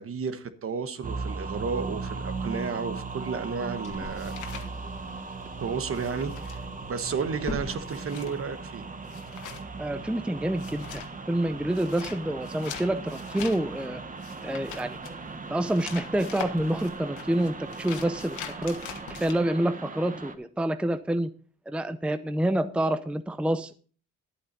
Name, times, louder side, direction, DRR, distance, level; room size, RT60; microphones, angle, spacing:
voice 1, 0.0-4.3 5.6-8.9, right 5 dB, 45° right, 11 dB, 1.3 m, -32 dB
sound 1, 1.0-20.4, right 4 dB, 25° right, 1.2 m, -38 dB
sound 2, 2.4-8.6, left 1 dB, 20° left, 2.8 m, -43 dB
sound 3, 3.3-5.4 5.7-19.3, left 9 dB, 80° left, 1.6 m, -43 dB
voice 2, 9.8-11.0 11.3-14.0 14.4-15.0 15.5-18.8 19.1-21.3 21.7-23.7, right 1 dB, 5° right, 12 dB, 0.6 m, -27 dB
11.5 x 8.5 x 4.0 m, 0.40 s
cardioid pair, 90°, 30 cm